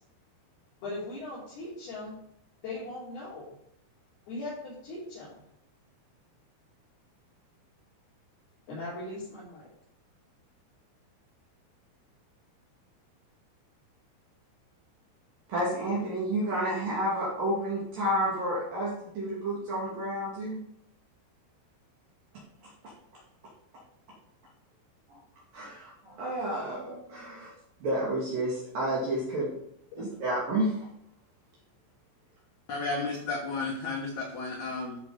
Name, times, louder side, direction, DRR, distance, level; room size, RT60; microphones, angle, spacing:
voice 1, 0.8-2.1 2.6-3.5 4.3-5.4 8.7-9.7 29.9-30.0, left 2 dB, 55° left, -10 dB, 5.6 m, -39 dB
voice 2, 15.5-20.6 25.5-27.5 27.8-29.5 30.0-30.7, right 1 dB, 55° right, -5 dB, 3.5 m, -30 dB
voice 3, 32.7-35.0, left 3 dB, 75° left, 0 dB, 1.7 m, -33 dB
13.5 x 6.2 x 5.0 m, 0.75 s
omnidirectional pair, 5.5 m